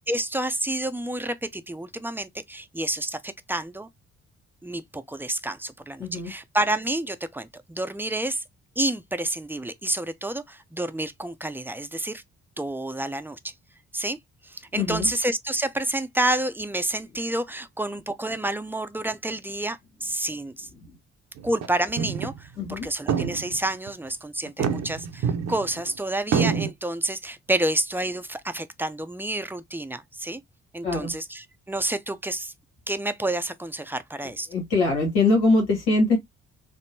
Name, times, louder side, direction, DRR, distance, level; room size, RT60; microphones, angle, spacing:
voice 1, 0.0-3.9 4.6-8.4 8.8-12.2 12.6-13.5 13.9-14.2 14.4-20.7 21.4-30.4 30.7-32.5 32.9-34.5, right 1 dB, 5° right, 0.5 m, -29 dB
voice 2, 6.0-6.3 14.7-15.1 20.8-21.0 22.6-22.9 30.8-31.1 34.5-36.2, left 3 dB, 90° left, 1.1 m, -22 dB
sound 1, 21.4-21.7 22.0-22.4 22.7-22.8 23.1-23.9 24.5-25.9 26.3-26.7, right 6 dB, 55° right, 0.7 m, -26 dB
3.5 x 2.0 x 2.6 m
hypercardioid pair, 45°, 33 cm